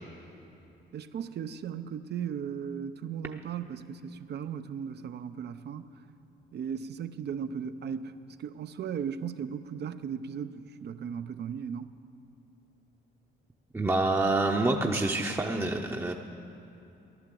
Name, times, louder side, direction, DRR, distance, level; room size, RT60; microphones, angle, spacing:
voice 1, 0.9-5.9 6.5-11.9, right 7 dB, 55° right, 11 dB, 0.7 m, -37 dB
voice 2, 13.7-16.1, right 2 dB, 10° right, 1 dB, 0.8 m, -27 dB
15.0 x 11.0 x 7.6 m, 2.9 s
cardioid pair, 90°, 20 cm